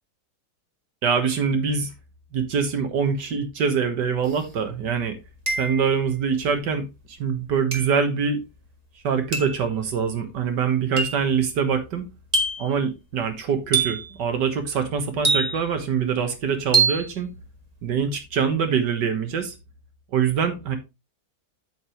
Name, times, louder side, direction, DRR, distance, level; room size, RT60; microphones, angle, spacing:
voice 1, 1.0-1.9 2.3-5.2 5.6-8.4 9.0-12.1 12.6-17.3 17.8-19.5 20.1-20.8, right 6 dB, 80° right, 8 dB, 2.0 m, -24 dB
sound 1, 4.3-4.4 5.5-6.0 7.7-8.0 9.3-9.6 11.0-11.3 12.3-12.8 13.7-14.1 15.2-15.8 16.7-17.1, right 4 dB, 25° right, 1.7 m, -24 dB
8.1 x 8.1 x 3.1 m, 0.24 s
omnidirectional pair, 1.8 m